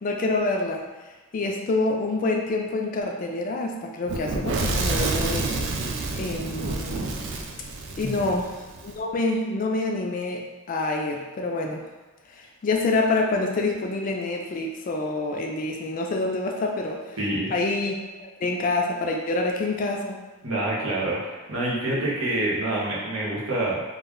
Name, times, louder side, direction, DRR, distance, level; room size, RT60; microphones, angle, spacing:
voice 1, 0.0-0.8 1.3-5.8 6.2-7.2 8.0-11.9 12.3-17.0 17.5-20.2, left 2 dB, 40° left, 1 dB, 0.3 m, -27 dB
Fire / Explosion, 4.1-8.9, right 3 dB, 60° right, 0.3 m, -29 dB
voice 2, 8.0-8.4 17.2-17.5 20.4-23.8, right 1 dB, 85° right, -6 dB, 0.9 m, -27 dB
2.3 x 2.1 x 3.6 m, 1.2 s
head